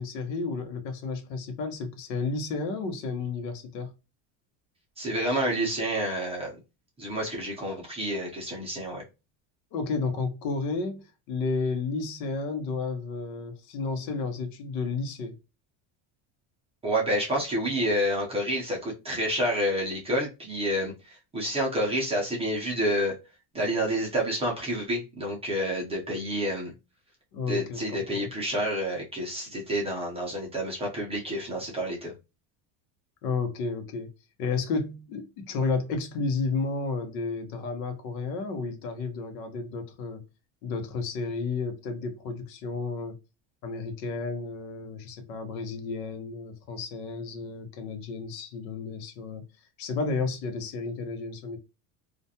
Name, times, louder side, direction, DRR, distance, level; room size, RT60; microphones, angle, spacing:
voice 1, 0.0-3.9 9.7-15.4 27.3-28.3 33.2-34.1 34.4-40.2 40.6-43.2 43.6-49.4 49.8-51.6, left 4 dB, 85° left, 0.9 m, -32 dB
voice 2, 5.0-6.5 7.0-9.0 16.8-23.1 23.5-26.7 27.5-32.1, equal, 15° right, 0.5 m, -29 dB
2.4 x 2.2 x 2.7 m
cardioid pair, 160°, 48 cm